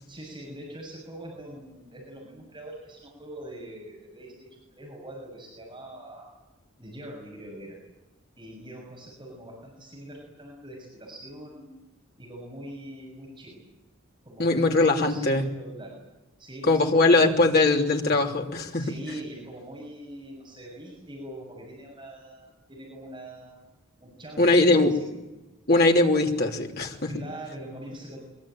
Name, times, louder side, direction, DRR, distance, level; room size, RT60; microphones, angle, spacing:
voice 1, 0.0-6.3 6.8-7.8 8.3-11.8 12.2-13.6 14.2-16.0 16.4-17.8 18.7-23.6 24.0-25.2 26.9-28.2, right 1 dB, 20° right, -2 dB, 6.7 m, -43 dB
voice 2, 14.4-15.4 16.7-18.8 24.4-24.9 25.7-27.1, left 2 dB, 45° left, 1 dB, 3.2 m, -21 dB
23.5 x 23.0 x 9.0 m, 1.0 s
head